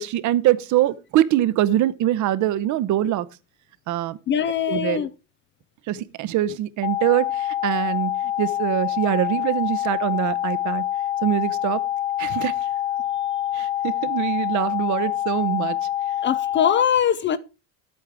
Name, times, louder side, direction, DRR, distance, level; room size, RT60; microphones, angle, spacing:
voice 1, 0.0-3.3 3.9-4.2 4.7-5.0 5.9-10.8 11.2-11.8 12.2-12.5 13.5-15.8, right 13 dB, 45° right, 0.8 m, -23 dB
voice 2, 4.3-5.1 16.2-17.4, left 9 dB, 30° left, 0.4 m, -21 dB
sound 1, 6.8-16.8, left 12 dB, 50° left, 1.0 m, -26 dB
10.0 x 8.7 x 4.7 m
supercardioid pair, 130°, 42 cm